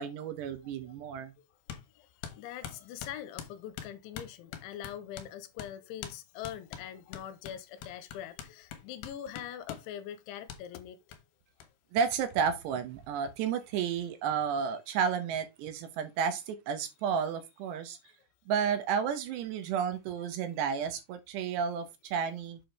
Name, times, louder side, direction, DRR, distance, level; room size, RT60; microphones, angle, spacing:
voice 1, 0.0-1.3 11.9-18.0 18.5-22.6, right 7 dB, 75° right, 2.9 m, -32 dB
sound 1, 1.7-1.9 2.2-5.3 5.6-5.7 6.0-6.2 6.4-9.9 10.5-10.6 11.1-11.2 11.6-11.7 12.0-12.1 12.3-13.0, left 9 dB, 70° left, 3.1 m, -44 dB
voice 2, 2.0-11.0, left 10 dB, 85° left, 3.0 m, -43 dB
7.9 x 6.3 x 3.4 m
omnidirectional pair, 5.6 m